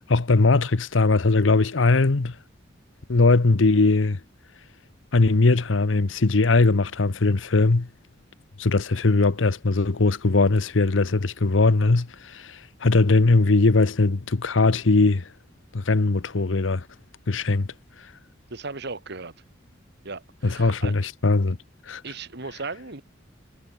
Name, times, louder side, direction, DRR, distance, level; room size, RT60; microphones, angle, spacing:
voice 1, 0.0-2.4 3.1-4.2 5.1-7.9 8.6-15.3 15.7-16.9 17.3-17.7 20.4-21.6 21.9-22.0, left 3 dB, 85° left, 0.9 m, -20 dB
voice 2, 18.5-19.3 20.0-20.9 22.0-23.0, right 3 dB, 60° right, 2.1 m, -36 dB
head